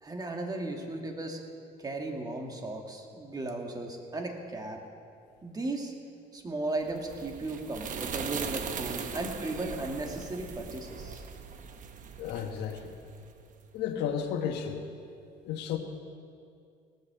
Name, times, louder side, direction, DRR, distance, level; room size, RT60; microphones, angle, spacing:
voice 1, 0.0-1.4 1.8-4.8 5.4-5.9 6.3-11.2, right 2 dB, 25° right, 2 dB, 1.9 m, -36 dB
sound 1, 6.8-13.4, right 6 dB, 50° right, 1.0 m, -40 dB
voice 2, 12.2-12.9 13.7-14.8 15.5-15.8, left 8 dB, 85° left, 5 dB, 1.3 m, -33 dB
18.0 x 8.5 x 6.8 m, 2.4 s
cardioid pair, 110°, 17 cm